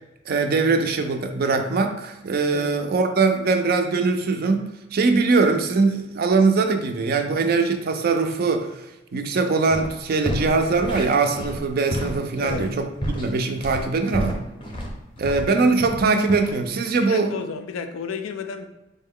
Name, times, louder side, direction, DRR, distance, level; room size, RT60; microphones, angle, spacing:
voice 1, 0.3-8.8 9.1-14.4 15.2-17.3, right 4 dB, 50° right, 6 dB, 0.4 m, -22 dB
sound 1, 9.7-9.9 10.2-15.5 15.8-16.5, equal, 25° left, 0.5 m, -30 dB
voice 2, 12.4-12.7 17.0-18.7, left 5 dB, 75° left, 8 dB, 0.3 m, -32 dB
3.7 x 2.1 x 3.7 m, 1.0 s
head